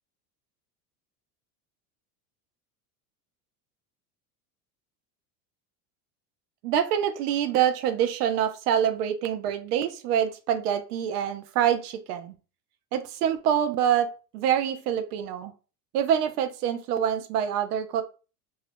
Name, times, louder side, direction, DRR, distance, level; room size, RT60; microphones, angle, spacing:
voice 1, 6.6-12.3 12.9-14.1 14.3-15.5 15.9-18.0, right 9 dB, 90° right, 9 dB, 0.7 m, -25 dB
2.7 x 2.3 x 3.3 m, 0.34 s
supercardioid pair, 125°, 45 cm